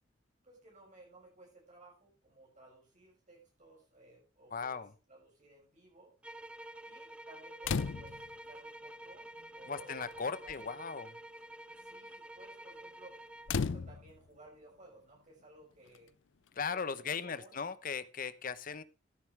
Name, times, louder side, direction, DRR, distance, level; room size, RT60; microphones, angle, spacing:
voice 1, 0.4-4.8 5.1-6.1 6.9-10.7 11.8-16.1 16.7-17.6, right 2 dB, 40° right, -2 dB, 6.5 m, -58 dB
voice 2, 4.5-4.9 9.7-11.2 16.6-18.8, left 5 dB, 50° left, 14 dB, 1.0 m, -38 dB
sound 1, 6.2-13.6, right 1 dB, 5° right, 0.6 m, -49 dB
sound 2, 7.6-8.4 9.4-9.5 9.9-10.2 10.5-10.8 13.5-14.4 15.9-16.0, left 5 dB, 85° left, 0.5 m, -35 dB
13.5 x 11.5 x 3.4 m, 0.33 s
head